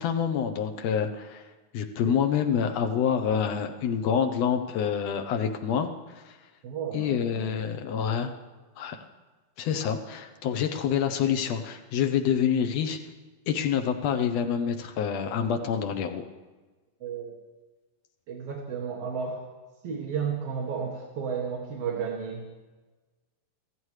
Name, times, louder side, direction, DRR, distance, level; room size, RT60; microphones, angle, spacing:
voice 1, 0.0-1.5 1.7-6.4 6.9-8.3 8.8-9.0 9.6-13.0 13.5-16.2, left 7 dB, 90° left, 6 dB, 1.4 m, -27 dB
voice 2, 6.6-7.6 17.0-17.4 18.3-19.4 19.8-22.4, right 6 dB, 55° right, -1 dB, 2.0 m, -33 dB
25.0 x 15.5 x 3.2 m, 1.3 s
omnidirectional pair, 4.0 m